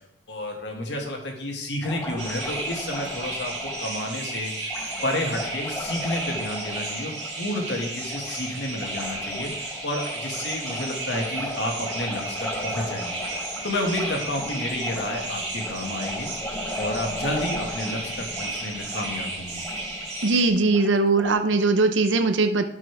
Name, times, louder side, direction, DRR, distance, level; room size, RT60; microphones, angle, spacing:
voice 1, 0.3-4.7 5.0-16.3 16.8-19.6, left 1 dB, 70° left, 1 dB, 2.1 m, -31 dB
Liquid, 1.8-21.4, left 1 dB, 15° left, 1.0 m, -37 dB
sound 1, 2.2-20.5, right 2 dB, 40° right, 3.6 m, -34 dB
voice 2, 20.2-22.6, right 3 dB, 85° right, 7 dB, 0.7 m, -20 dB
12.5 x 6.1 x 3.5 m, 0.80 s
head